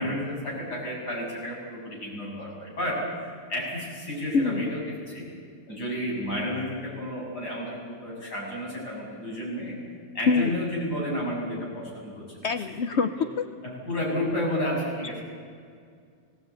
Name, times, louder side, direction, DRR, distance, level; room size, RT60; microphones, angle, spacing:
voice 1, 0.0-3.0 3.5-5.3 5.7-9.8 10.1-12.2 13.0-13.3 13.6-15.2, left 1 dB, 60° left, -4 dB, 7.7 m, -31 dB
voice 2, 4.3-4.7 10.3-10.5 12.4-13.1 13.4-13.5, left 4 dB, 80° left, 10 dB, 0.6 m, -24 dB
19.0 x 17.5 x 9.3 m, 2.1 s
omnidirectional pair, 2.0 m